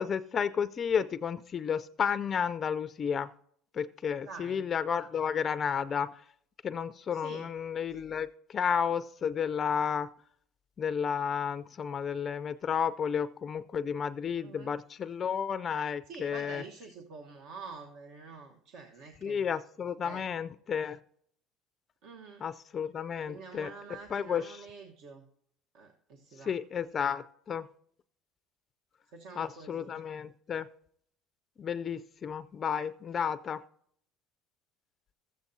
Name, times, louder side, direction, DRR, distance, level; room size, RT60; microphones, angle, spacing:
voice 1, 0.0-3.3 3.7-6.1 6.6-10.1 10.8-16.6 19.2-21.0 22.4-23.7 24.1-24.4 26.5-27.7 29.4-30.7 31.6-33.6, left 7 dB, 30° left, 12 dB, 0.4 m, -32 dB
voice 2, 4.2-4.7 7.1-7.5 14.4-14.8 16.1-19.5 20.0-20.3 22.0-22.4 23.3-25.3 25.7-26.6 29.1-30.0, right 4 dB, 65° right, 3 dB, 1.2 m, -47 dB
14.0 x 8.2 x 2.7 m, 0.64 s
cardioid pair, 125°, 0 cm